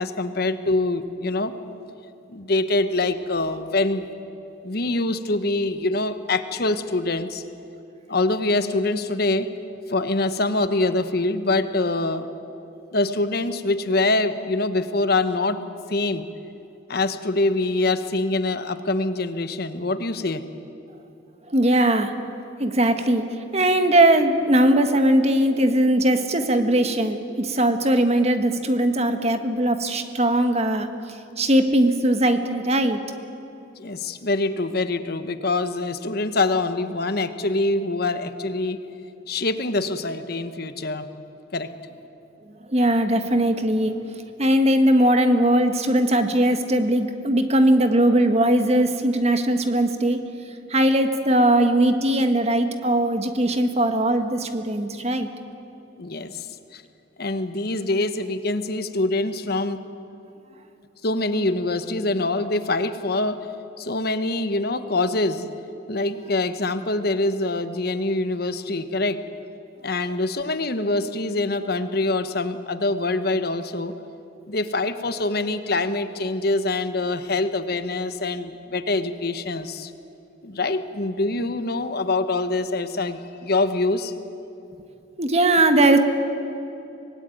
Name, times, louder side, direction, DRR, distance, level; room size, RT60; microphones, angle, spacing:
voice 1, 0.0-1.5 2.3-4.1 4.6-7.4 8.1-9.5 9.9-12.3 12.9-16.3 16.9-20.4 33.8-38.8 39.3-41.0 41.5-41.7 56.0-56.5 56.7-56.8 57.2-59.8 61.0-63.4 63.8-65.5 65.9-69.2 69.8-73.9 74.5-79.9 80.4-84.1, left 2 dB, 55° left, 10 dB, 1.2 m, -24 dB
voice 2, 21.5-22.1 22.6-23.2 23.5-30.9 31.4-33.0 42.7-44.0 44.4-50.2 50.7-55.3 85.2-86.0, right 1 dB, 35° right, 7 dB, 1.6 m, -19 dB
25.0 x 19.0 x 9.3 m, 2.8 s
head